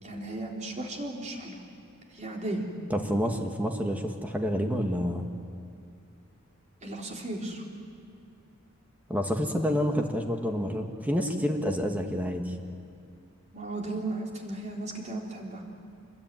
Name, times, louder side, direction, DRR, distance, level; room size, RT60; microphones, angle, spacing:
voice 1, 0.0-1.6 2.1-2.6 6.8-7.6 13.5-15.6, right 2 dB, 35° right, -1 dB, 3.9 m, -35 dB
voice 2, 2.9-5.3 9.1-12.5, equal, 5° right, 3 dB, 1.6 m, -28 dB
27.0 x 21.0 x 9.3 m, 2.5 s
head